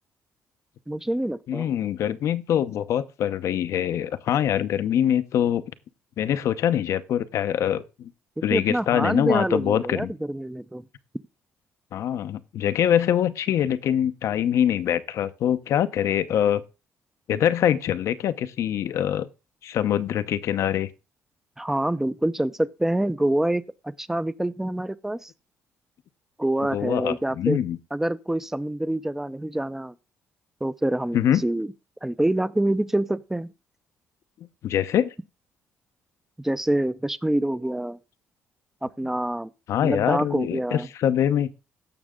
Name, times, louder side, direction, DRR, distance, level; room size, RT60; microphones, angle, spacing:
voice 1, 0.9-1.7 8.5-10.8 21.6-25.3 26.4-27.6 27.9-29.9 30.6-31.7 32.0-33.5 36.4-38.0 38.8-39.5 39.8-40.9, right 1 dB, 5° right, 0.6 m, -26 dB
voice 2, 1.5-5.6 6.2-8.1 8.4-10.1 11.9-16.6 17.3-19.3 19.6-20.9 26.7-27.8 31.1-31.4 34.6-35.1 39.7-41.5, left 10 dB, 70° left, 0.8 m, -24 dB
16.0 x 6.1 x 3.7 m
cardioid pair, 90°, 5 cm